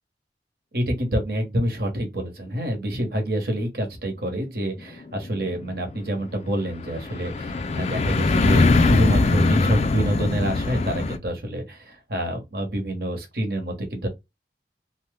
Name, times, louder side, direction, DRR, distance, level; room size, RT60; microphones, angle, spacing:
voice 1, 0.7-14.1, right 1 dB, 55° right, 1.1 m, -27 dB
sound 1, 4.8-11.2, left 3 dB, 35° left, 0.3 m, -22 dB
2.7 x 2.1 x 3.3 m
head